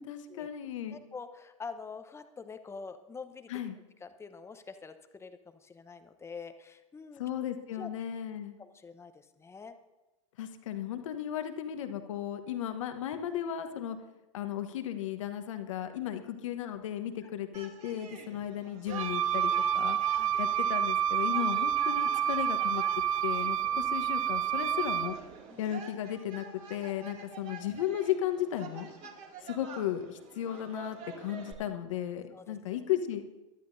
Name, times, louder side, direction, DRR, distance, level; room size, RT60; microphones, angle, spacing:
voice 1, 0.0-1.0 3.5-3.7 7.2-8.6 10.4-14.0 14.3-20.0 20.4-22.8 23.2-25.2 25.6-28.9 29.4-33.2, left 11 dB, 70° left, 7 dB, 1.3 m, -35 dB
voice 2, 0.9-3.5 4.0-7.2 7.7-7.9 8.6-9.8 17.2-17.3 20.1-20.4 23.6-23.9 25.5-25.6 32.3-32.8, left 5 dB, 15° left, 9 dB, 1.0 m, -46 dB
sound 1, 17.5-31.5, right 4 dB, 40° right, 2.5 m, -48 dB
Wind instrument woodwind instrument, 18.9-25.2, right 9 dB, 85° right, 0.4 m, -29 dB
22.5 x 12.5 x 2.7 m, 1.1 s
hypercardioid pair, 95°, 17 cm